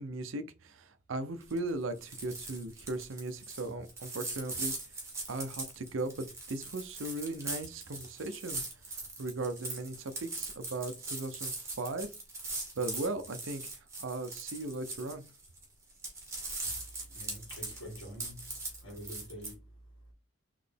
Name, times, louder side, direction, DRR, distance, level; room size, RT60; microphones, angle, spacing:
voice 1, 0.0-4.7 5.3-12.1 12.8-15.2, right 2 dB, 75° right, 0.6 m, -38 dB
sound 1, 1.4-1.7 2.0-15.6 15.9-19.5, right 2 dB, 15° right, 1.2 m, -41 dB
voice 2, 16.6-19.7 20.0-20.1, equal, 65° left, 2.0 m, -47 dB
4.0 x 3.2 x 3.4 m
head